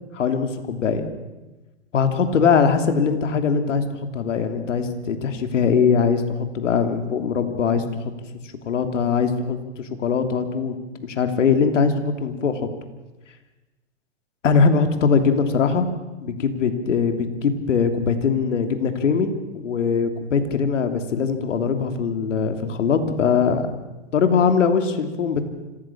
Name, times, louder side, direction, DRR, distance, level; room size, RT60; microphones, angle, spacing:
voice 1, 0.1-1.1 1.9-3.8 4.1-8.1 8.7-10.7 11.0-12.6 14.4-15.9 16.2-23.6 24.1-25.4, left 5 dB, 75° left, 7 dB, 2.9 m, -21 dB
26.0 x 17.0 x 7.2 m, 1.1 s
hypercardioid pair, 140°, 37 cm